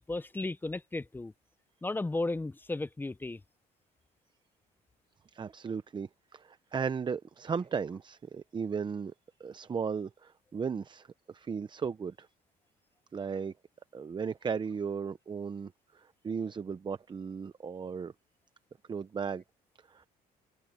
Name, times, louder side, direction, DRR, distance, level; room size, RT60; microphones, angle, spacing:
voice 1, 0.0-1.3 1.8-3.4, left 2 dB, 10° left, 0.6 m, -34 dB
voice 2, 5.3-9.1 9.4-12.3 13.1-13.5 13.9-18.1 18.9-19.4 19.9-20.1, right 6 dB, 25° right, 0.7 m, -36 dB
cardioid pair, 110°, 17 cm